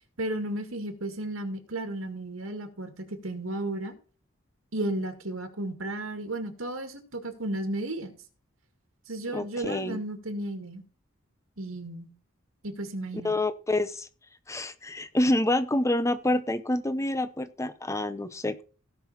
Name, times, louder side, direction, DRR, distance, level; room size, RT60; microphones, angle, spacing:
voice 1, 0.2-3.9 4.7-8.1 9.1-10.8 11.6-12.1 12.6-13.3, right 1 dB, 90° right, 6 dB, 2.2 m, -34 dB
voice 2, 9.3-10.0 13.2-14.1 14.5-18.6, left 1 dB, 15° left, 12 dB, 0.7 m, -27 dB
17.0 x 5.9 x 4.2 m, 0.37 s
head